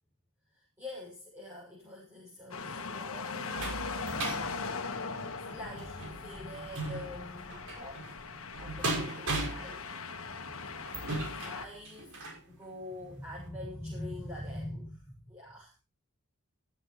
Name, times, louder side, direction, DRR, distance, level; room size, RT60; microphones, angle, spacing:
voice 1, 0.5-3.8 5.3-8.3 8.6-9.9 10.5-12.2 12.5-15.8, left 1 dB, 10° right, -5 dB, 6.9 m, -45 dB
sound 1, 2.5-11.7, left 4 dB, 75° left, 1.6 m, -40 dB
sound 2, 2.6-12.4 13.0-13.1 13.5-13.6, right 2 dB, 85° right, 5.8 m, -39 dB
15.0 x 14.5 x 3.3 m, 0.31 s
head